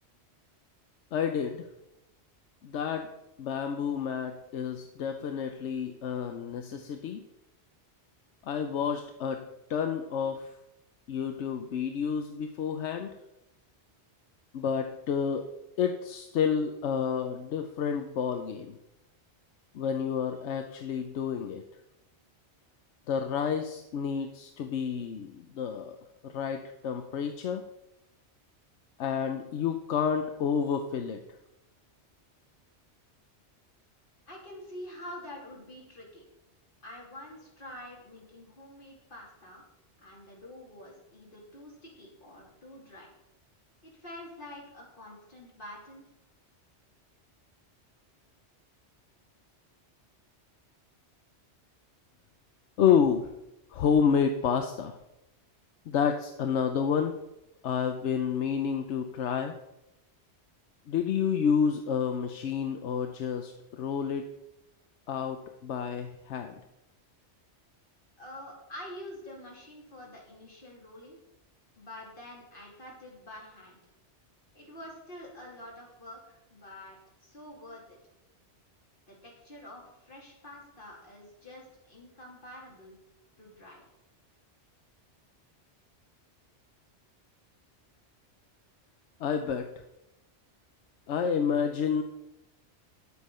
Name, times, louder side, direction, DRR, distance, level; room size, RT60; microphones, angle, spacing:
voice 1, 1.1-1.7 2.6-3.1 3.4-7.2 8.4-10.5 11.1-13.1 14.5-15.5 15.8-18.8 19.7-21.6 23.1-26.0 26.2-27.6 29.0-31.2 52.8-53.3 53.7-55.0 55.9-57.1 57.6-59.5 60.9-64.3 65.1-66.5 89.2-89.7 91.1-92.0, left 7 dB, 80° left, 6 dB, 1.0 m, -29 dB
voice 2, 34.3-36.3 36.8-39.6 40.0-43.1 43.8-46.1 68.2-71.2 71.8-73.8 74.5-78.0 79.1-83.0 83.4-83.8, left 1 dB, 50° left, -3 dB, 3.1 m, -47 dB
9.7 x 8.2 x 5.5 m, 0.91 s
omnidirectional pair, 1.2 m